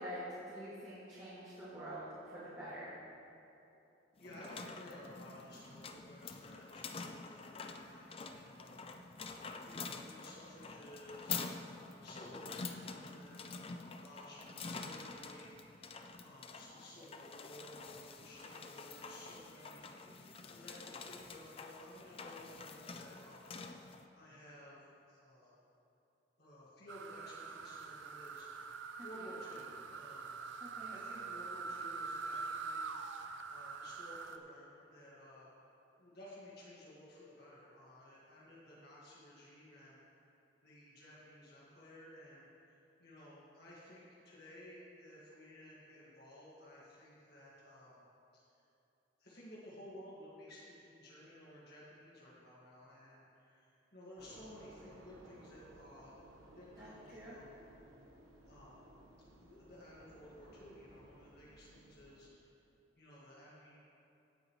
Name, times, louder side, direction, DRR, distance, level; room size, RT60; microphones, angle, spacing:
voice 1, 0.0-3.0 29.0-29.3 30.6-30.9 56.8-56.9 57.1-57.4, equal, 25° right, -14 dB, 2.8 m, -46 dB
voice 2, 4.2-8.9 9.7-25.6 26.4-33.2 33.5-35.5 36.0-40.0 40.6-48.0 48.3-48.4 49.2-56.1 56.5-57.5 58.5-58.8 59.4-62.5 63.0-63.8, left 1 dB, 50° left, -7 dB, 1.9 m, -55 dB
sound 1, 4.2-24.0, left 4 dB, 30° left, 0.4 m, -47 dB
sound 2, 26.9-34.4, right 4 dB, 70° right, 0.6 m, -44 dB
sound 3, 54.2-62.3, right 1 dB, 90° right, 1.2 m, -59 dB
16.5 x 8.9 x 3.2 m, 2.9 s
head